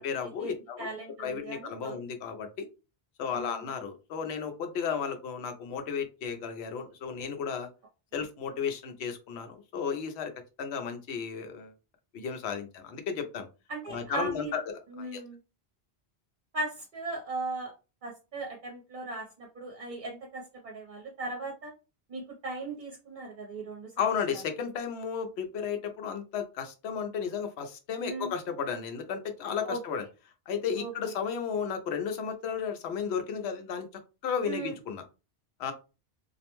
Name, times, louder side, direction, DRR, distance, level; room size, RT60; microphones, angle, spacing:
voice 1, 0.0-0.9 1.2-2.7 3.2-7.7 8.1-10.3 10.6-11.7 12.1-13.5 13.9-15.2 24.0-30.1 30.5-33.9 34.2-35.0 35.6-35.7, left 6 dB, 90° left, 6 dB, 0.9 m, -33 dB
voice 2, 0.8-1.9 3.3-3.6 13.7-14.5 14.9-15.4 16.5-17.7 18.0-21.7 22.1-23.9 28.0-28.3 29.6-29.8 30.8-30.9 34.4-34.7, right 3 dB, 55° right, -1 dB, 0.8 m, -37 dB
2.4 x 2.1 x 2.9 m, 0.31 s
omnidirectional pair, 1.1 m